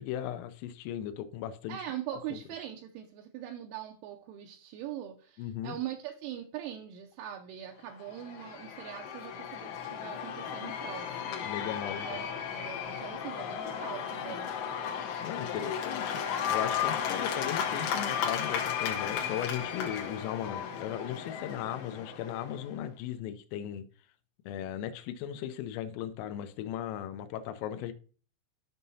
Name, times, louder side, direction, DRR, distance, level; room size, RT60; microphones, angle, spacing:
voice 1, 0.0-1.8 2.3-2.4 5.4-5.8 11.4-12.3 15.2-23.9 24.5-27.9, left 10 dB, 90° left, 3.3 m, -37 dB
voice 2, 1.7-11.5 12.0-14.5, right 11 dB, 80° right, 3.0 m, -42 dB
Cheering / Applause / Crowd, 8.0-22.7, left 8 dB, 75° left, 2.6 m, -34 dB
12.5 x 5.4 x 2.7 m
omnidirectional pair, 5.8 m